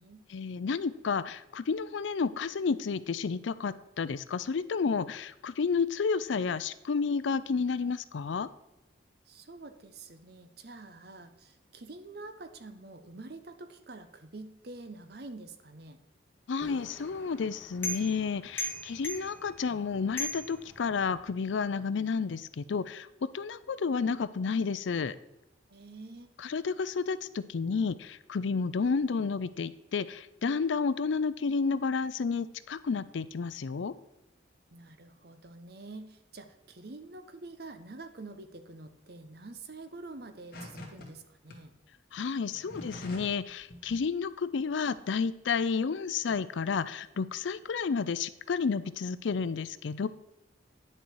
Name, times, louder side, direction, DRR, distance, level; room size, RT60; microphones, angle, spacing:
voice 1, 0.3-8.5 16.5-23.1 23.3-25.2 26.4-33.9 42.1-50.1, left 5 dB, 75° left, 16 dB, 0.4 m, -31 dB
voice 2, 9.3-16.0 25.7-26.3 34.7-41.7, right 2 dB, 55° right, 9 dB, 0.8 m, -47 dB
sound 1, 16.6-21.3, left 1 dB, 10° left, 1.6 m, -40 dB
sound 2, 40.5-41.1 41.5-41.6 42.4-43.4 43.7-44.0, left 1 dB, 50° left, 1.7 m, -44 dB
9.8 x 6.7 x 4.6 m, 0.89 s
head